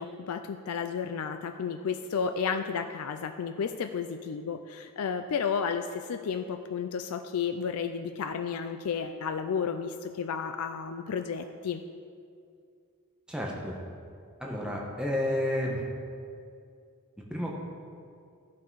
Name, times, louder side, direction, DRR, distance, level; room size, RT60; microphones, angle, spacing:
voice 1, 0.0-11.8, left 6 dB, 80° left, 8 dB, 0.4 m, -32 dB
voice 2, 13.3-13.8 14.4-15.8 17.3-17.5, left 1 dB, 5° right, -2 dB, 1.0 m, -30 dB
12.0 x 5.8 x 4.7 m, 2.3 s
head